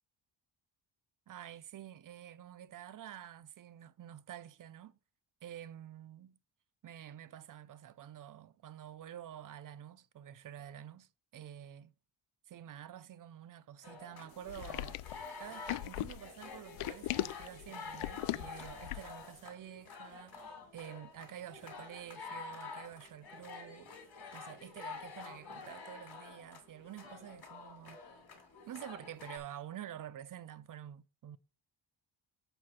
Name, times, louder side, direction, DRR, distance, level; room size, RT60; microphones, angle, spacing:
voice 1, 1.3-5.0 5.4-6.4 6.8-11.9 12.5-15.0 15.4-24.0 24.3-28.0 28.7-31.4, right 11 dB, 45° right, 0.4 m, -49 dB
sound 1, 13.8-29.4, left 4 dB, 50° left, 2.8 m, -49 dB
sound 2, 14.5-19.2, left 16 dB, 85° left, 0.5 m, -39 dB
7.6 x 4.8 x 5.7 m
wide cardioid pair, 145°, 49 cm